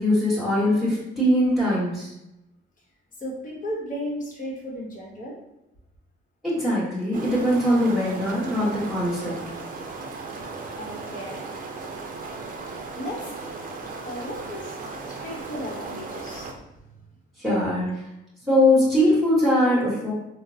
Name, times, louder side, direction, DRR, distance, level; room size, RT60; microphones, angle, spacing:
voice 1, 0.0-2.1 6.4-9.4 17.4-18.0 18.5-20.1, left 1 dB, 5° right, -10 dB, 1.2 m, -21 dB
voice 2, 3.2-5.4 10.7-11.4 12.9-13.2 14.0-16.7, equal, 40° left, -3 dB, 1.0 m, -35 dB
sound 1, 7.1-16.5, right 3 dB, 45° right, 0.5 m, -36 dB
3.7 x 2.0 x 2.7 m, 0.91 s
cardioid pair, 90°, 20 cm